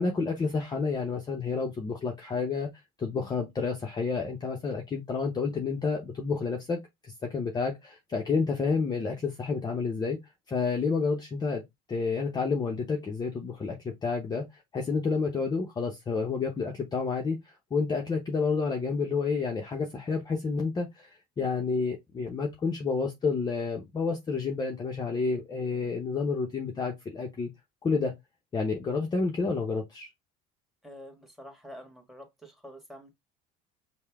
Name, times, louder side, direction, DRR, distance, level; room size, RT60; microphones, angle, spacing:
voice 1, 0.0-2.7 3.0-10.2 10.5-11.6 11.9-27.5 27.8-28.1 28.5-30.1, left 4 dB, 25° left, 0.7 m, -30 dB
voice 2, 30.8-33.1, equal, ahead, 1.4 m, -47 dB
5.5 x 2.2 x 3.4 m
cardioid pair, 135°, 18 cm